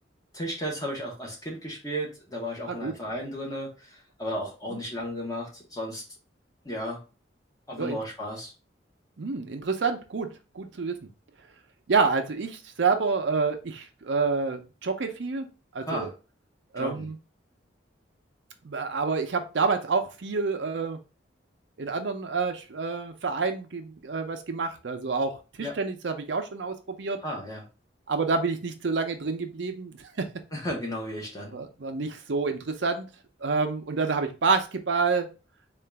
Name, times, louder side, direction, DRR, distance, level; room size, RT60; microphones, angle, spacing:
voice 1, 0.3-6.0 6.6-7.0 7.7-8.5 15.9-16.1 16.8-17.1 25.6-25.7 27.2-27.6 30.5-31.5, equal, 20° left, -2 dB, 1.1 m, -34 dB
voice 2, 9.2-11.0 11.9-15.5 15.7-16.1 16.7-17.2 18.6-21.0 21.8-27.2 28.1-30.3 31.5-33.1 33.4-35.3, right 4 dB, 75° right, 7 dB, 0.6 m, -28 dB
3.8 x 2.5 x 3.3 m, 0.31 s
head